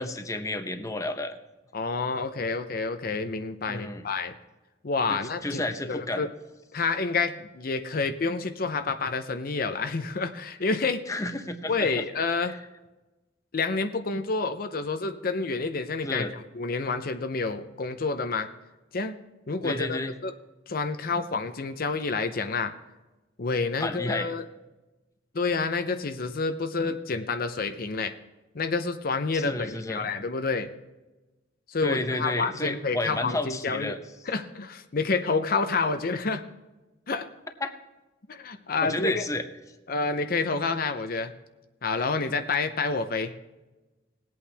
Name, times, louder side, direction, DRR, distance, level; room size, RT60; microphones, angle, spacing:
voice 1, 0.0-1.4 3.7-4.1 5.1-6.3 11.1-12.0 12.4-12.6 16.0-16.3 19.6-20.1 23.8-24.3 29.3-30.1 31.8-34.0 37.6-37.8 38.8-39.4, left 2 dB, 15° left, 7 dB, 0.8 m, -31 dB
voice 2, 1.7-4.3 4.8-5.6 5.9-6.3 6.7-11.0 11.7-12.5 13.5-18.5 18.9-19.2 19.5-20.3 20.7-22.7 23.4-24.4 25.3-28.1 28.5-30.7 31.7-34.0 34.3-36.4 37.1-37.3 38.3-39.2 39.9-41.3 41.8-43.3, left 4 dB, 50° left, 9 dB, 0.7 m, -28 dB
20.0 x 8.5 x 3.4 m, 1.1 s
head